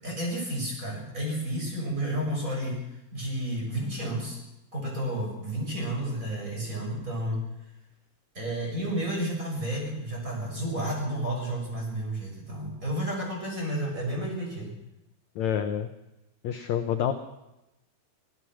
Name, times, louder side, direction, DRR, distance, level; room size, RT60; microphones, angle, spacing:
voice 1, 0.0-2.8 3.1-4.4 4.7-7.5 8.3-14.7, right 1 dB, 20° right, -1 dB, 7.5 m, -31 dB
voice 2, 15.4-15.9 16.4-17.1, left 9 dB, 70° left, 7 dB, 1.7 m, -27 dB
25.0 x 17.0 x 6.3 m, 0.93 s
omnidirectional pair, 4.5 m